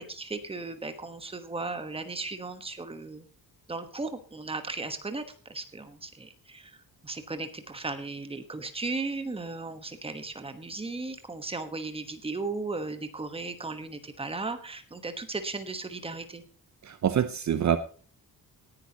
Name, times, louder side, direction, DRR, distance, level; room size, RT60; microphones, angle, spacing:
voice 1, 0.0-3.3 3.7-5.2 5.5-6.8 7.0-16.4, right 3 dB, 15° right, 8 dB, 1.2 m, -36 dB
voice 2, 16.8-17.8, right 9 dB, 50° right, 11 dB, 0.7 m, -25 dB
18.5 x 10.5 x 2.9 m, 0.38 s
wide cardioid pair, 160°, 37 cm